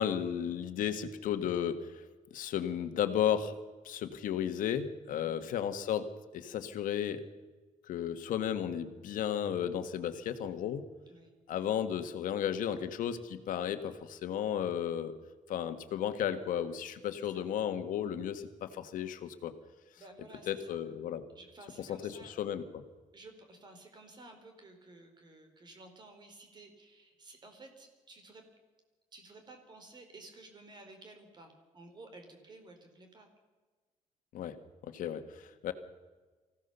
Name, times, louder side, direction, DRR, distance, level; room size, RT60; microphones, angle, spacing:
voice 1, 0.0-2.0 2.3-3.6 3.8-7.2 7.9-10.8 11.5-15.1 15.5-19.5 20.5-21.2 21.8-22.8 34.3-34.6 34.8-35.7, left 9 dB, 85° left, 9 dB, 1.7 m, -34 dB
voice 2, 5.1-5.4 11.1-11.3 17.1-17.4 20.0-20.8 21.3-22.3 23.1-28.5 29.1-33.3, right 2 dB, 35° right, 5 dB, 4.2 m, -54 dB
24.5 x 16.0 x 6.8 m, 1.3 s
cardioid pair, 155°, 13 cm